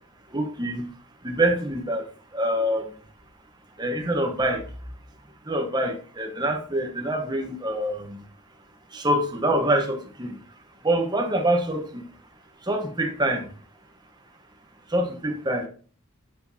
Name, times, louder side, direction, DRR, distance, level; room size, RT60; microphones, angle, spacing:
voice 1, 0.3-0.9 1.2-2.0 2.3-2.8 3.8-4.6 5.5-8.2 8.9-10.3 10.8-12.0 12.7-13.4 14.9-15.7, right 1 dB, 20° right, 1.0 m, -25 dB
8.2 x 6.7 x 2.7 m
head